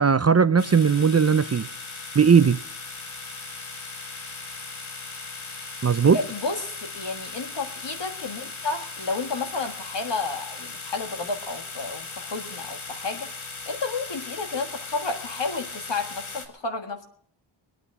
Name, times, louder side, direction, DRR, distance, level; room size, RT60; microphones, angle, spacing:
voice 1, 0.0-1.7 2.2-2.6 5.8-6.2, right 6 dB, 35° right, 0.5 m, -18 dB
sound 1, 0.6-16.5, left 3 dB, 80° left, 2.0 m, -38 dB
voice 2, 6.1-17.0, left 3 dB, 60° left, 1.6 m, -31 dB
24.0 x 9.2 x 4.8 m
wide cardioid pair, 90°, 47 cm